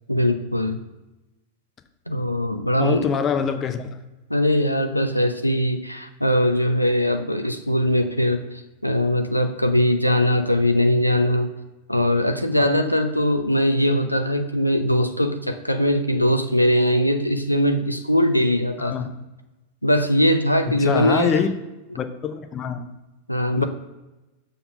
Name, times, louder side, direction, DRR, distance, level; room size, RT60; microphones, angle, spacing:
voice 1, 0.1-0.8 2.1-3.1 4.3-8.4 8.8-11.5 11.9-18.9 19.8-21.4 23.3-23.6, equal, 90° left, 7 dB, 0.5 m, -21 dB
voice 2, 2.8-3.9 18.8-19.1 20.7-21.5 21.9-22.9 23.5-23.6, left 7 dB, 25° left, 9 dB, 0.7 m, -24 dB
6.9 x 3.8 x 5.2 m, 1.1 s
figure-of-eight pair, 90°, 0 cm